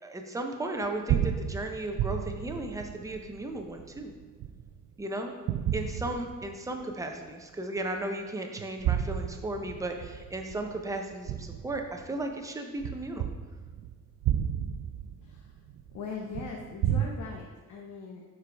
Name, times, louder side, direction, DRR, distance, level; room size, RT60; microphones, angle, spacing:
voice 1, 0.0-4.1 5.0-5.3 5.7-13.3, right 2 dB, 10° right, 3 dB, 0.6 m, -35 dB
sound 1, 0.8-4.9 5.5-6.8 7.3-7.4 8.6-12.2 12.8-17.1, right 10 dB, 75° right, 0.5 m, -32 dB
voice 2, 15.2-15.5 15.9-18.2, left 5 dB, 75° left, -1 dB, 0.9 m, -40 dB
7.3 x 4.7 x 4.5 m, 1.4 s
wide cardioid pair, 170°, 30 cm